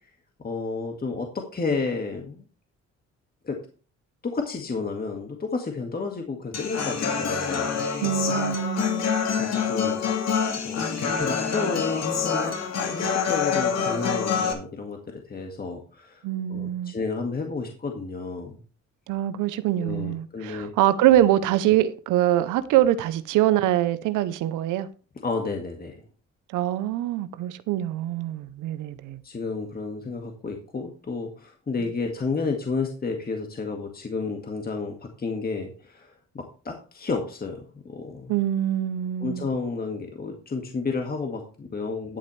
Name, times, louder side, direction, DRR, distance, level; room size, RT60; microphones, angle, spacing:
voice 1, 0.4-2.4 3.4-3.6 4.2-7.7 9.4-16.2 16.5-18.6 19.8-20.7 25.2-26.0 29.2-38.3 39.2-42.2, left 4 dB, 30° left, 3 dB, 1.8 m, -31 dB
Human voice / Acoustic guitar, 6.5-14.5, left 6 dB, 60° left, 2.2 m, -26 dB
voice 2, 8.0-9.1 16.2-16.9 19.1-24.9 26.5-29.2 38.3-39.5, right 12 dB, 90° right, 14 dB, 0.7 m, -24 dB
11.5 x 8.4 x 3.2 m, 0.37 s
cardioid pair, 90°, 30 cm